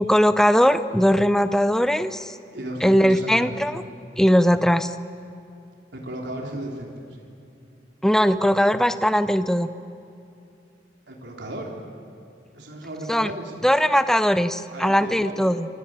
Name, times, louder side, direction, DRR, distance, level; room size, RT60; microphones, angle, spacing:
voice 1, 0.0-2.3 2.8-3.8 4.2-4.9 8.0-9.7 13.1-13.3 13.6-15.7, equal, 5° left, 11 dB, 0.6 m, -19 dB
voice 2, 2.5-3.5 5.9-7.3 11.1-11.8 12.5-13.5 14.7-15.5, right 1 dB, 80° right, -1 dB, 3.6 m, -35 dB
27.0 x 22.0 x 8.9 m, 2.6 s
head